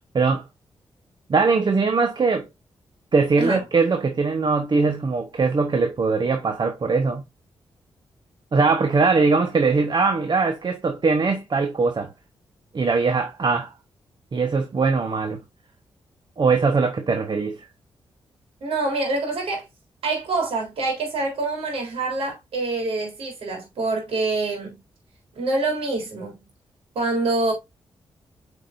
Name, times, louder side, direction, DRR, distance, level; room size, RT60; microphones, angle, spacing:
voice 1, 1.3-2.5 3.1-7.2 8.5-12.1 12.7-13.7 14.3-15.4 16.4-17.7, right 4 dB, 50° right, 1.1 m, -21 dB
voice 2, 18.6-19.7 20.0-24.8 25.4-26.4 27.0-27.5, right 3 dB, 80° right, 3.5 m, -25 dB
8.5 x 5.1 x 2.5 m
supercardioid pair, 50°, 10 cm